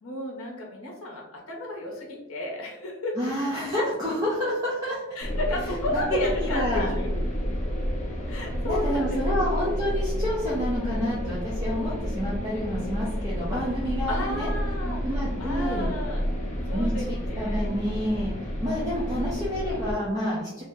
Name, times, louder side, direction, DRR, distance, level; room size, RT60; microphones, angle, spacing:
voice 1, 0.0-3.2 5.1-7.1 8.3-9.4 14.1-16.2 16.7-17.7, left 1 dB, 85° left, -1 dB, 0.7 m, -33 dB
voice 2, 3.2-5.0 6.1-6.2 6.5-6.9 8.6-14.5 15.0-15.9 16.7-18.3 18.6-20.6, equal, 15° right, -8 dB, 0.6 m, -29 dB
sound 1, 5.2-19.9, equal, 35° left, 0.7 m, -30 dB
2.8 x 2.0 x 3.5 m, 0.97 s
head